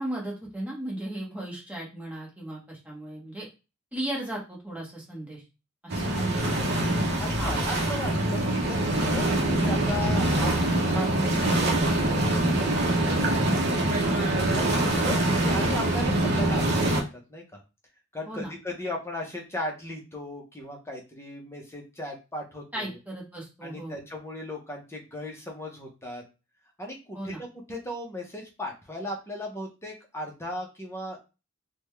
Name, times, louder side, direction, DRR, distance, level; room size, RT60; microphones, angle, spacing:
voice 1, 0.0-3.4 3.9-5.4 5.8-6.1 7.4-7.6 14.0-14.2 18.3-18.5 22.7-24.0 27.1-27.4, right 1 dB, 10° right, -3 dB, 1.1 m, -36 dB
sound 1, 5.9-17.0, right 1 dB, 50° right, 0.8 m, -24 dB
voice 2, 6.1-13.4 14.4-17.0 17.3-17.4 18.1-23.0 23.6-26.2 26.8-31.2, left 1 dB, 15° left, 0 dB, 0.8 m, -37 dB
3.7 x 2.3 x 3.2 m, 0.29 s
head